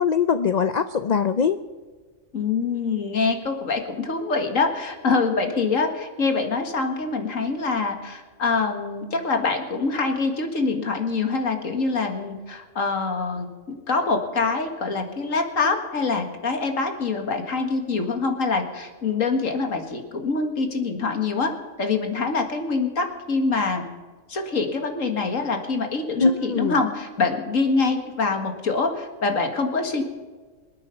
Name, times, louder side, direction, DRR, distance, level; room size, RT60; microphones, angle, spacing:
voice 1, 0.0-1.6 26.2-26.7, left 5 dB, 50° left, 11 dB, 0.5 m, -21 dB
voice 2, 2.3-21.5 21.8-23.8 24.3-30.0, left 4 dB, 75° left, 5 dB, 2.2 m, -25 dB
26.5 x 9.1 x 5.6 m, 1.4 s
omnidirectional pair, 1.4 m